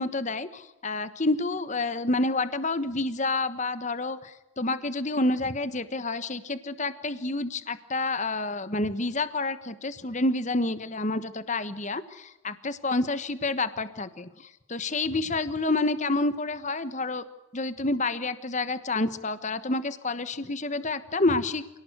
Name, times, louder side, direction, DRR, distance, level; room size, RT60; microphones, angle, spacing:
voice 1, 0.0-14.3 14.7-17.2 17.5-21.6, left 2 dB, 35° left, 13 dB, 1.3 m, -28 dB
27.5 x 18.5 x 8.0 m, 0.97 s
head